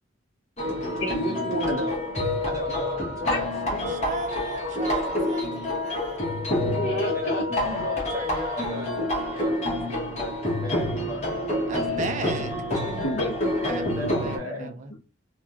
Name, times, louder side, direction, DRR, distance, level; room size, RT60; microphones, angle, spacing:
sound 1, 0.6-14.4, left 1 dB, 35° left, 0.8 m, -28 dB
voice 1, 1.0-1.8 3.3-3.4 3.7-3.9 4.9-5.2 6.8-7.4 12.9-13.6 14.0-14.1 14.6-14.7, equal, 75° left, 0.7 m, -30 dB
voice 2, 1.7-2.0 2.4-3.4 7.1-9.0 9.3-11.3 13.6-14.7, left 1 dB, 15° right, 0.9 m, -35 dB
voice 3, 3.9-6.2 11.7-13.2 13.5-14.9, right 4 dB, 40° right, 0.4 m, -36 dB
2.3 x 2.2 x 2.7 m
head